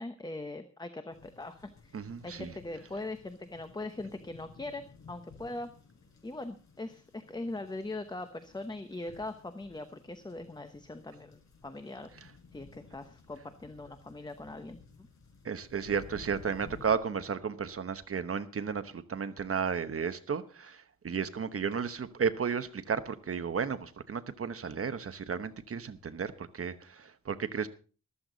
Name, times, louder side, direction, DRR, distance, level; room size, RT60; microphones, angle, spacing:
voice 1, 0.0-2.0 2.2-5.7 6.2-12.1 12.5-15.1, left 2 dB, 15° left, 0.9 m, -41 dB
sound 1, 1.1-17.0, left 4 dB, 70° left, 4.5 m, -56 dB
voice 2, 1.9-2.5 15.4-27.7, right 6 dB, 50° right, 1.1 m, -33 dB
14.0 x 13.5 x 4.0 m
wide cardioid pair, 135°, 30 cm